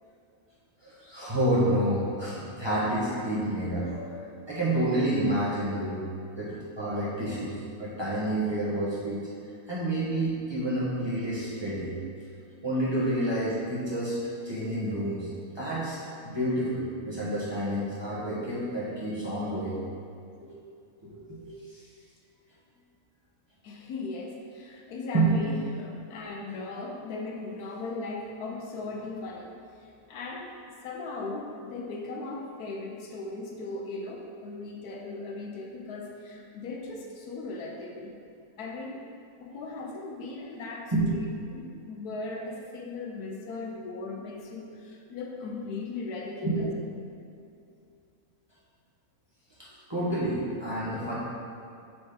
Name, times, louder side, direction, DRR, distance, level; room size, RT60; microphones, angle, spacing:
voice 1, 0.8-4.2 4.5-6.0 6.4-9.2 9.7-11.9 12.6-14.2 14.4-16.0 16.2-19.8 20.4-20.5 21.0-21.8 25.1-25.3 40.9-41.1 46.4-46.6 49.6-51.1, right 1 dB, 20° right, -10 dB, 1.3 m, -29 dB
voice 2, 23.6-29.5 29.8-38.1 38.6-39.1 39.4-41.3 41.5-46.7, left 3 dB, 85° left, 0 dB, 1.2 m, -38 dB
4.5 x 4.2 x 5.0 m, 2.5 s
omnidirectional pair, 1.6 m